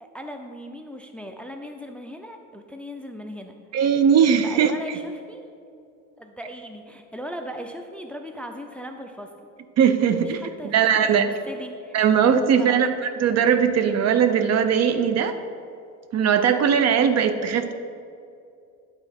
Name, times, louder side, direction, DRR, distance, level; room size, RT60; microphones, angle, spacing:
voice 1, 0.0-3.5 4.4-5.5 6.2-9.3 10.2-10.7 11.1-12.0 12.6-12.9, equal, 5° left, 5 dB, 0.5 m, -38 dB
voice 2, 3.7-4.7 9.8-10.4 10.6-11.3 11.9-15.4 16.1-17.7, right 7 dB, 45° right, 9 dB, 0.6 m, -19 dB
9.0 x 4.1 x 5.2 m, 2.4 s
supercardioid pair, 90°, 36 cm